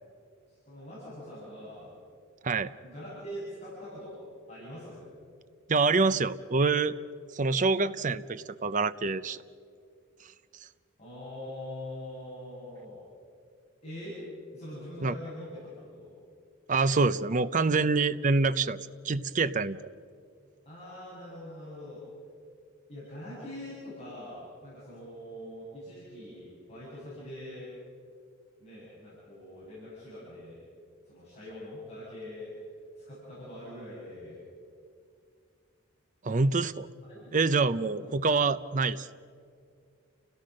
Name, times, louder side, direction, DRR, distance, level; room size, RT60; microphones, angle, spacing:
voice 1, 0.5-1.9 2.8-4.1 4.5-5.0 11.0-13.0 13.8-14.2 14.5-16.1 20.6-22.0 22.9-27.7 28.6-30.6 31.1-32.5 33.0-34.4 37.1-37.3 37.8-38.1, left 1 dB, 30° left, -10 dB, 8.0 m, -43 dB
voice 2, 5.7-7.0 7.3-9.4 15.0-15.1 16.7-18.8 19.0-19.8 36.2-36.9 37.3-39.1, right 4 dB, 40° right, 14 dB, 0.6 m, -26 dB
30.0 x 17.0 x 6.4 m, 2.3 s
head